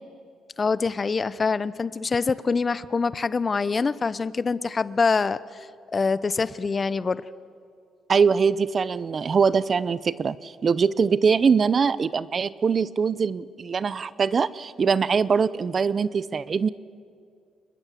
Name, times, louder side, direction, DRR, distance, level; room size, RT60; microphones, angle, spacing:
voice 1, 0.6-5.4 5.9-7.2, left 4 dB, 35° left, 17 dB, 0.8 m, -25 dB
voice 2, 8.1-16.7, right 5 dB, 45° right, 18 dB, 0.7 m, -22 dB
28.0 x 21.5 x 7.4 m, 2.3 s
cardioid pair, 90°, 0 cm